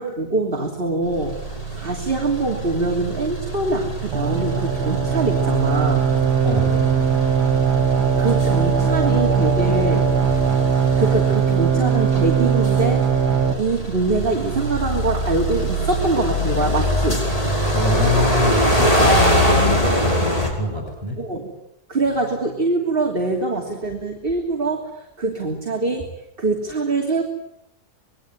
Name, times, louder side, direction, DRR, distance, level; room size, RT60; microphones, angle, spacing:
voice 1, 0.0-1.4 1.7-6.0 8.2-10.1 11.0-13.1 13.6-17.3 21.2-21.5 21.9-24.9 25.2-26.1 26.4-27.2, right 3 dB, 35° right, 1 dB, 3.2 m, -23 dB
sound 1, 1.1-20.5, equal, 20° left, 5.3 m, -24 dB
sound 2, 4.1-13.5, right 6 dB, 70° right, 2.7 m, -19 dB
voice 2, 6.4-7.2 17.7-21.3, left 1 dB, 15° right, 0 dB, 7.5 m, -25 dB
27.0 x 21.5 x 9.7 m, 0.83 s
omnidirectional pair, 1.7 m